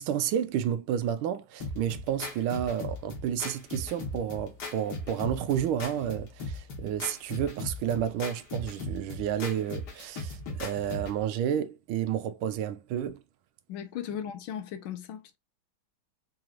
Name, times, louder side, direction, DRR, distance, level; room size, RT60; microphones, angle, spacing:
voice 1, 0.0-13.2, right 9 dB, 80° right, 1.4 m, -31 dB
sound 1, 1.6-11.2, left 2 dB, 55° left, 1.6 m, -38 dB
voice 2, 13.7-15.4, left 9 dB, 80° left, 1.4 m, -37 dB
4.7 x 3.0 x 2.4 m
omnidirectional pair, 2.3 m